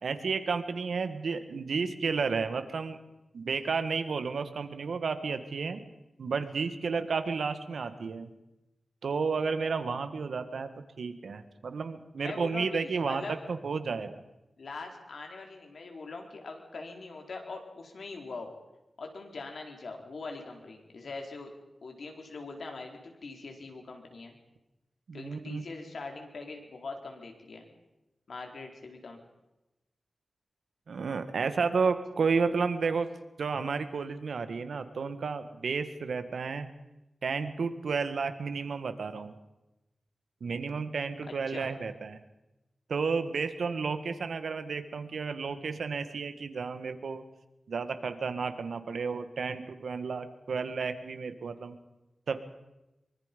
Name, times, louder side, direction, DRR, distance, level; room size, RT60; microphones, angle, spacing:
voice 1, 0.0-3.0 3.3-5.8 6.2-8.3 9.0-10.7 11.0-14.2 25.1-25.6 30.9-33.1 33.4-36.7 37.2-39.3 40.4-42.2 42.9-47.2 47.7-51.8 52.3-52.4, right 5 dB, 90° right, 10 dB, 1.8 m, -32 dB
voice 2, 12.2-13.4 14.6-18.5 19.0-21.5 21.8-24.3 25.1-27.7 28.3-29.2 41.5-41.7, left 3 dB, 75° left, 3 dB, 4.2 m, -42 dB
24.0 x 24.0 x 5.4 m, 0.95 s
wide cardioid pair, 110°, 0 cm